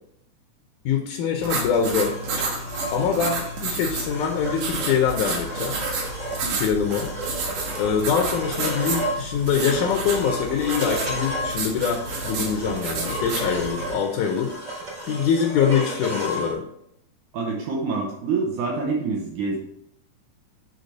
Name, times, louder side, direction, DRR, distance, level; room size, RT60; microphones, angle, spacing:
voice 1, 0.9-2.2 2.9-5.8 6.6-7.1 7.8-14.5 15.1-16.6, left 7 dB, 75° left, 3 dB, 2.1 m, -24 dB
sound 1, 1.4-13.9, right 3 dB, 90° right, 2.9 m, -31 dB
sound 2, 1.9-16.5, right 1 dB, 40° right, 3.3 m, -33 dB
voice 2, 17.3-19.6, right 4 dB, 75° right, -2 dB, 2.3 m, -26 dB
6.6 x 4.4 x 4.0 m, 0.74 s
omnidirectional pair, 3.8 m